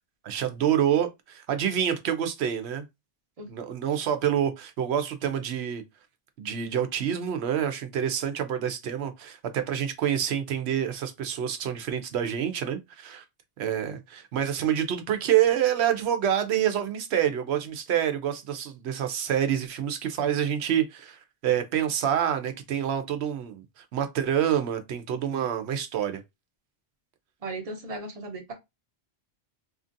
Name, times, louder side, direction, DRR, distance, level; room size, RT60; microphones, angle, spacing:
voice 1, 0.2-2.8 3.5-5.8 6.4-13.2 13.6-26.2, right 9 dB, 75° right, 0.8 m, -27 dB
voice 2, 27.4-28.5, right 2 dB, 40° right, 0.7 m, -36 dB
2.8 x 2.5 x 2.5 m
omnidirectional pair, 1.1 m